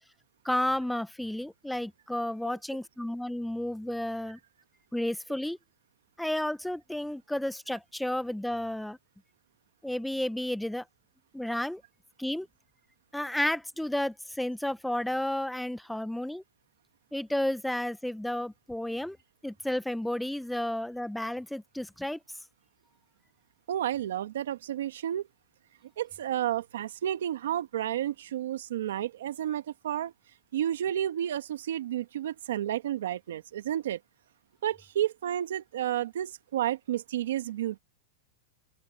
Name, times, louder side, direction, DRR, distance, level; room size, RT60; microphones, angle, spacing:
voice 1, 0.4-4.4 4.9-5.6 6.2-9.0 9.8-10.8 11.3-11.8 12.2-12.5 13.1-16.4 17.1-19.2 19.4-22.2, left 1 dB, ahead, 0.6 m, -32 dB
voice 2, 23.7-25.3 26.0-30.1 30.5-34.0 34.6-37.8, right 11 dB, 85° right, 1.7 m, -31 dB
open air
supercardioid pair, 165°, 0 cm